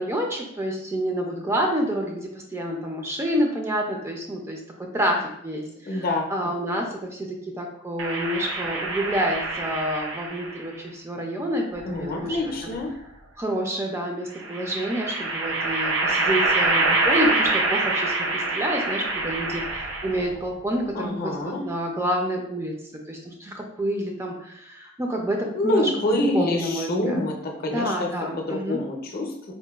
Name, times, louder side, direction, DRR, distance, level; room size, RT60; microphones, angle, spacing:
voice 1, 0.0-12.4 13.4-25.9 26.2-27.2 27.7-28.8, equal, 15° right, 1 dB, 0.3 m, -28 dB
voice 2, 5.9-6.3 11.9-12.9 20.9-21.6 25.5-27.3 27.6-28.1 28.4-29.5, left 1 dB, 50° left, 1 dB, 0.6 m, -26 dB
sound 1, 8.0-10.6 11.8-12.8 14.4-20.4, right 2 dB, 80° right, 0.5 m, -26 dB
3.8 x 2.1 x 2.3 m, 0.74 s
head